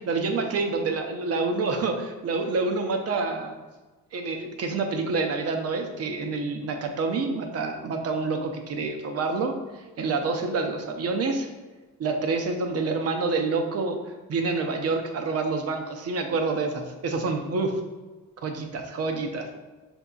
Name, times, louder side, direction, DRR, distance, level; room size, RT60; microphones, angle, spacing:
voice 1, 0.1-3.5 4.1-11.5 12.0-14.0 14.3-17.8 18.4-19.5, right 3 dB, 55° right, 4 dB, 0.7 m, -27 dB
5.3 x 3.5 x 2.3 m, 1.2 s
cardioid pair, 90°, 30 cm